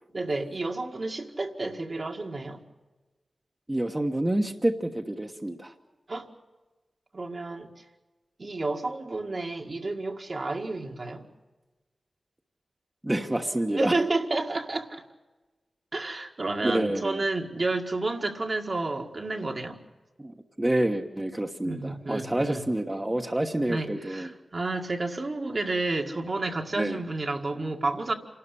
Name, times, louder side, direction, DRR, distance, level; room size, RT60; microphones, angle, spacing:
voice 1, 0.1-2.6 6.1-6.3 7.1-7.7 8.4-11.3 13.7-15.0 15.9-19.8 21.6-22.6 23.7-28.1, right 2 dB, 55° right, 3 dB, 1.9 m, -30 dB
voice 2, 3.7-5.7 13.0-13.9 16.6-17.2 20.2-24.3 26.7-27.0, right 1 dB, 20° right, 3 dB, 1.3 m, -28 dB
27.0 x 12.5 x 8.4 m, 1.2 s
cardioid pair, 55°, 0 cm